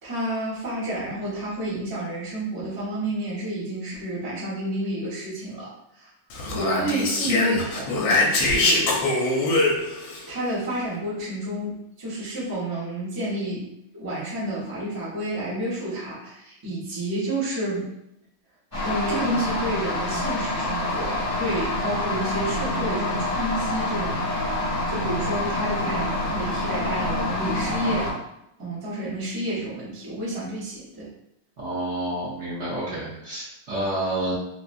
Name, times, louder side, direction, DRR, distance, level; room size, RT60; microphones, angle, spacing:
voice 1, 0.0-6.1 6.5-9.0 10.3-13.6 13.9-17.9 18.8-24.2 24.9-28.1 28.6-31.1, right 1 dB, 25° right, -8 dB, 0.5 m, -30 dB
Speech, 6.3-10.2, left 2 dB, 75° left, 1.4 m, -23 dB
sound 1, 18.7-28.1, left 1 dB, 20° left, 1.3 m, -27 dB
voice 2, 31.6-34.3, right 1 dB, 60° right, -8 dB, 0.7 m, -29 dB
3.8 x 2.2 x 2.5 m, 0.82 s
omnidirectional pair, 2.2 m